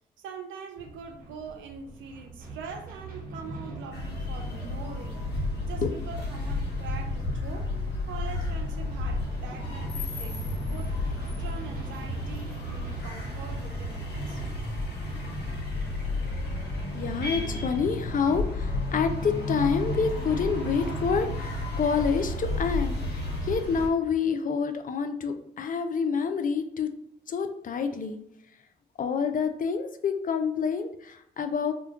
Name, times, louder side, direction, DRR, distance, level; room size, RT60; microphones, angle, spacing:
voice 1, 0.2-5.3 5.7-7.7 8.1-10.4 10.7-11.0 11.4-14.4, right 5 dB, 75° right, 4 dB, 0.5 m, -43 dB
sound 1, 0.8-18.3, right 2 dB, 45° right, 1.0 m, -44 dB
sound 2, 3.9-23.9, left 2 dB, 60° left, 0.8 m, -32 dB
voice 2, 16.9-26.9 27.3-28.2 29.0-31.7, left 6 dB, 45° left, 7 dB, 0.4 m, -28 dB
sound 3, 18.8-22.9, equal, 5° right, 1.3 m, -41 dB
2.2 x 2.2 x 3.6 m, 0.74 s
hypercardioid pair, 40°, 20 cm